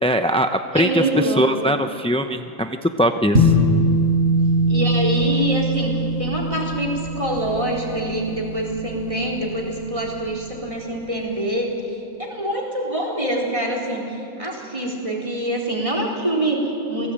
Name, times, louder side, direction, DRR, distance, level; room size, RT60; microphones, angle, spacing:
voice 1, 0.0-3.5, equal, 10° left, 7 dB, 0.4 m, -21 dB
voice 2, 0.7-1.5 4.7-17.1, right 1 dB, 20° right, 0 dB, 4.3 m, -25 dB
sound 1, 3.3-9.9, right 1 dB, 50° right, 6.5 m, -22 dB
27.0 x 19.0 x 8.8 m, 2.7 s
omnidirectional pair, 1.4 m